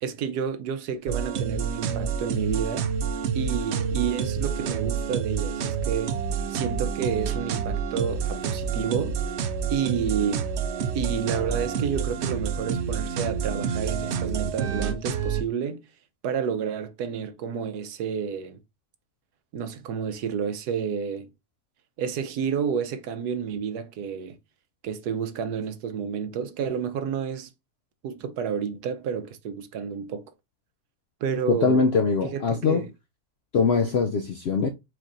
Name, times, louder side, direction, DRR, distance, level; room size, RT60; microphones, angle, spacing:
voice 1, 0.0-2.9 3.3-6.2 6.5-9.2 9.7-10.5 10.9-15.8 16.2-18.6 19.5-21.3 22.0-24.4 24.8-27.5 28.0-30.3 31.2-31.8 32.2-32.9, right 7 dB, 90° right, 1.3 m, -30 dB
sound 1, 1.1-15.4, right 6 dB, 65° right, 0.7 m, -28 dB
voice 2, 31.5-32.9 33.5-34.7, left 5 dB, 75° left, 0.6 m, -22 dB
4.6 x 4.3 x 2.6 m
omnidirectional pair, 1.6 m